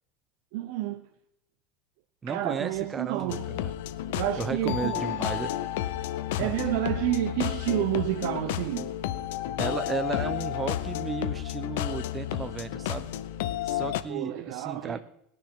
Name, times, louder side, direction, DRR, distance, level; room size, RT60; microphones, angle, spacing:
voice 1, 0.5-1.1 2.3-3.5 4.1-5.1 6.4-8.9 14.1-15.0, right 14 dB, 65° right, 0.7 m, -29 dB
voice 2, 2.2-3.7 4.4-5.5 6.4-6.6 9.6-13.1 13.6-15.0, right 5 dB, 15° right, 0.7 m, -34 dB
sound 1, 2.7-10.8, left 1 dB, 20° left, 2.5 m, -55 dB
sound 2, 3.3-14.0, left 12 dB, 85° left, 0.7 m, -31 dB
18.5 x 10.0 x 3.7 m
cardioid pair, 165°, 0 cm